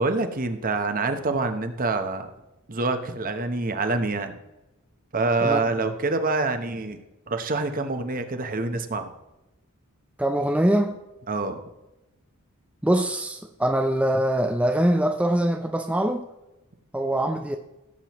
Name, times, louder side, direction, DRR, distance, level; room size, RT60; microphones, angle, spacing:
voice 1, 0.0-2.3 2.7-4.4 5.1-7.0 7.3-9.1 11.3-11.6, right 3 dB, 40° right, 7 dB, 1.0 m, -26 dB
voice 2, 10.2-11.0 12.8-16.2 16.9-17.6, right 1 dB, 5° right, 4 dB, 0.5 m, -23 dB
16.0 x 7.6 x 3.1 m, 0.97 s
head